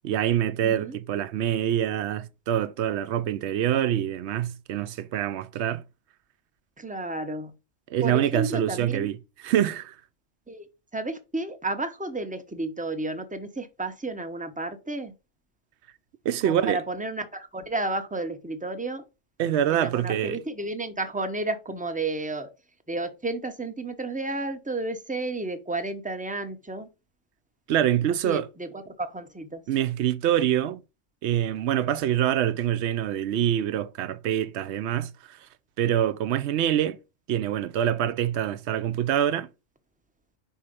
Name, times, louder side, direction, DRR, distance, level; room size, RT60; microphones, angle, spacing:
voice 1, 0.0-5.8 7.9-9.2 9.4-9.9 16.2-16.8 19.4-20.4 27.7-28.5 29.7-30.8 31.2-35.4 35.8-37.0 37.3-39.5, right 10 dB, 65° right, 0.8 m, -25 dB
voice 2, 0.6-1.0 6.8-7.5 8.0-9.1 10.5-10.7 10.9-15.1 16.4-19.0 19.7-22.5 22.9-26.9 28.2-29.6, right 2 dB, 10° right, 0.5 m, -32 dB
5.5 x 4.3 x 5.0 m
omnidirectional pair, 1.3 m